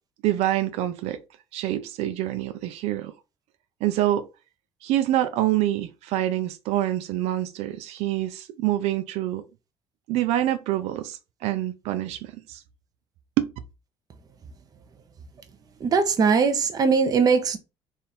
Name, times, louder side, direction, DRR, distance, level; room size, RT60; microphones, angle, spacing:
voice 1, 0.2-1.2 1.5-3.1 3.8-4.2 4.8-9.4 10.1-12.6 13.4-13.5, right 13 dB, 85° right, 0.5 m, -26 dB
voice 2, 15.8-17.6, right 5 dB, 35° right, 0.8 m, -20 dB
3.6 x 2.6 x 4.3 m
cardioid pair, 135°, 11 cm